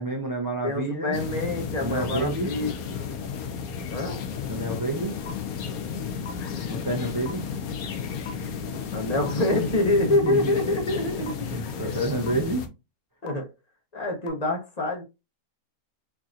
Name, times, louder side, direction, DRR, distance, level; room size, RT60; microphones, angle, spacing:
voice 1, 0.0-1.2 1.8-2.5 4.5-5.1 6.7-7.4 10.1-10.6 11.5-12.7, right 2 dB, 25° right, 0.4 m, -29 dB
voice 2, 0.6-2.8 3.9-4.2 8.9-11.5 13.2-13.5 13.9-15.0, left 2 dB, 30° left, 1.0 m, -26 dB
sound 1, 1.1-12.7, left 6 dB, 90° left, 1.2 m, -33 dB
sound 2, 5.3-5.4 6.2-6.3 7.2-7.3 8.3-8.4 9.3-9.4 10.3-10.4 11.3-11.4 12.3-12.4 13.3-13.4 14.3-14.4, left 4 dB, 50° left, 0.7 m, -38 dB
4.6 x 2.8 x 2.4 m
omnidirectional pair, 1.5 m